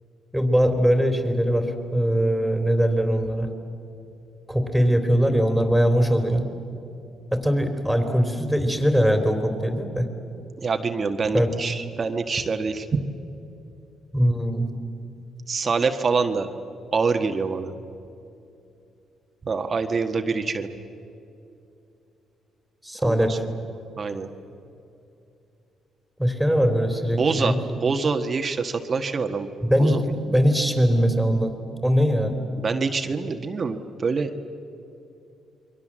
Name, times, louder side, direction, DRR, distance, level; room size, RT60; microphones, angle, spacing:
voice 1, 0.3-3.5 4.5-6.5 7.3-10.1 11.3-11.5 14.1-14.7 22.8-23.4 26.2-27.6 29.6-31.5 31.8-32.4, equal, ahead, 5 dB, 3.5 m, -21 dB
voice 2, 10.6-13.0 15.5-16.5 16.9-17.7 19.4-20.7 23.0-23.4 24.0-24.3 27.2-27.6 27.8-29.5 29.8-30.0 32.6-34.3, right 4 dB, 40° right, 6 dB, 1.5 m, -25 dB
28.5 x 23.0 x 7.5 m, 2.7 s
cardioid pair, 90°, 0 cm